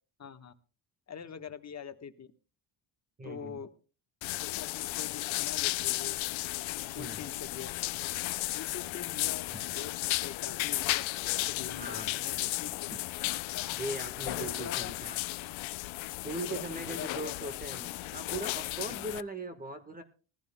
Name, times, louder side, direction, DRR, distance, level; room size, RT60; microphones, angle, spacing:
voice 1, 0.2-0.5 1.1-2.3 3.2-3.7 4.4-6.2 6.8-7.7 8.5-9.5 9.7-11.0 11.5-12.9 13.5-13.6 14.3-14.9 16.5-17.6 18.9-19.1, left 7 dB, 35° left, 8 dB, 1.3 m, -44 dB
voice 2, 3.2-3.6 6.9-7.2 9.5-9.7 11.8-12.1 13.7-15.2 16.2-20.0, right 2 dB, 15° right, 7 dB, 1.5 m, -39 dB
sound 1, 4.2-19.2, left 19 dB, 70° left, 0.6 m, -34 dB
20.0 x 15.0 x 2.2 m, 0.36 s
cardioid pair, 105°, 49 cm